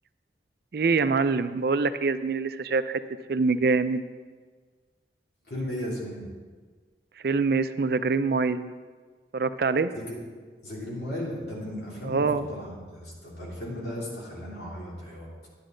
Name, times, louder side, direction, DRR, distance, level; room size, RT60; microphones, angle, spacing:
voice 1, 0.7-3.0 3.3-4.0 7.2-8.7 9.3-9.9 12.0-12.4, right 4 dB, 60° right, 12 dB, 0.4 m, -24 dB
voice 2, 5.5-6.3 9.9-10.2 10.6-15.3, left 1 dB, 70° left, -5 dB, 3.0 m, -35 dB
10.5 x 9.8 x 3.8 m, 1.5 s
head